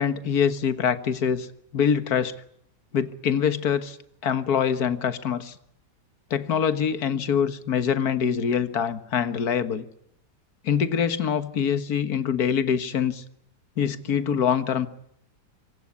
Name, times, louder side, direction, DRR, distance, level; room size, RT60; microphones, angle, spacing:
voice 1, 0.0-1.5 1.7-2.3 2.9-4.0 4.2-5.6 6.3-9.8 10.6-13.2 13.8-14.9, left 7 dB, 60° left, 12 dB, 1.9 m, -24 dB
25.5 x 24.5 x 8.4 m, 0.72 s
omnidirectional pair, 1.9 m